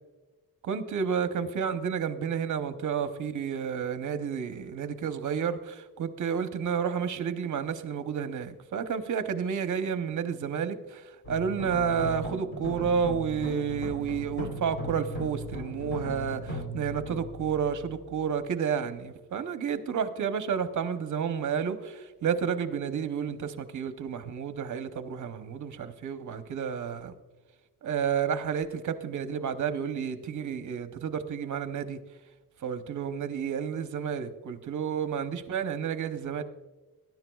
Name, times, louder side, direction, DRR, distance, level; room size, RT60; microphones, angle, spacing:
voice 1, 0.6-27.1 27.8-32.0 32.6-36.4, right 7 dB, 55° right, 9 dB, 0.8 m, -31 dB
sound 1, 11.2-18.5, equal, 35° left, 2.8 m, -38 dB
20.0 x 10.5 x 2.3 m, 1.2 s
wide cardioid pair, 170°, 35 cm